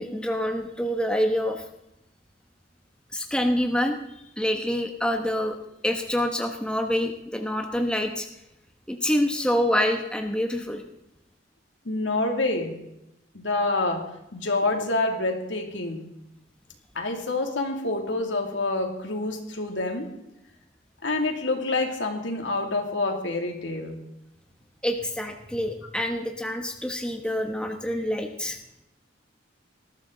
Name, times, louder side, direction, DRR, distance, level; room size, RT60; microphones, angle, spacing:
voice 1, 0.0-1.6 3.1-4.0 4.4-5.6 5.8-8.3 8.9-10.8 24.8-28.6, equal, 5° left, 4 dB, 1.1 m, -26 dB
voice 2, 11.8-12.8 13.3-16.1 16.9-20.1 21.0-24.0, left 2 dB, 75° left, 2 dB, 2.7 m, -27 dB
19.5 x 13.5 x 3.9 m, 0.86 s
head